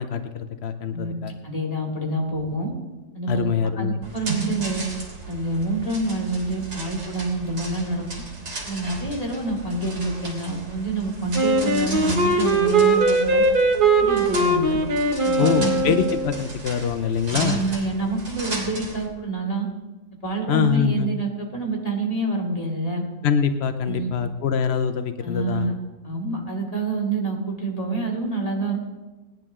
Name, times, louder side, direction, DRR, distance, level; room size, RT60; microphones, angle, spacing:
voice 1, 0.0-1.3 3.3-4.0 15.4-17.6 20.5-21.2 23.2-25.7, left 7 dB, 80° left, 9 dB, 0.5 m, -24 dB
voice 2, 1.4-2.7 3.1-4.8 5.3-8.0 8.6-13.4 14.1-14.8 15.2-16.0 17.3-19.7 20.2-23.0 23.9-24.1 25.2-25.7 26.0-28.8, right 2 dB, 20° left, -2 dB, 2.6 m, -27 dB
sound 1, 4.0-19.1, right 2 dB, 70° right, 3.6 m, -35 dB
Wind instrument woodwind instrument, 11.3-16.4, right 2 dB, 35° right, 1.0 m, -20 dB
19.5 x 10.5 x 3.7 m, 1.2 s
omnidirectional pair, 2.0 m